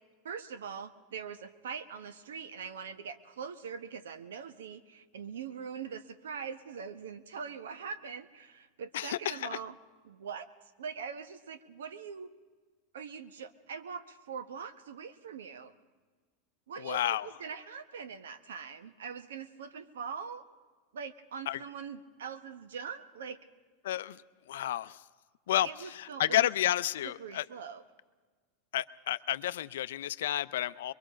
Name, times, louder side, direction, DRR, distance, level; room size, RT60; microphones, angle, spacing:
voice 1, 0.2-9.7 10.0-10.5 10.8-12.3 12.9-15.7 16.7-20.5 20.9-23.4 25.6-26.5 27.0-27.8, right 6 dB, 90° right, 1.0 m, -42 dB
voice 2, 8.9-9.6 16.8-17.3 21.5-21.6 23.8-24.2 24.5-25.0 25.5-27.5 28.7-30.9, left 13 dB, 80° left, 0.5 m, -31 dB
23.0 x 22.5 x 5.1 m
hypercardioid pair, 115°, 0 cm